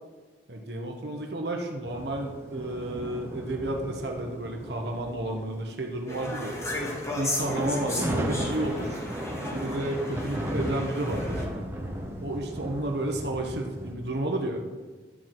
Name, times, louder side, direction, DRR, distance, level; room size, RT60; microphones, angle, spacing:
voice 1, 0.5-6.6 7.1-9.0 9.5-11.4 12.2-14.6, right 1 dB, 65° right, 2 dB, 1.2 m, -31 dB
sound 1, 1.8-5.7 6.4-6.6 7.3-13.9, right 1 dB, 15° right, 1.3 m, -35 dB
sound 2, 6.1-11.4, left 1 dB, 15° left, 2.1 m, -34 dB
12.5 x 4.6 x 7.7 m, 1.3 s
head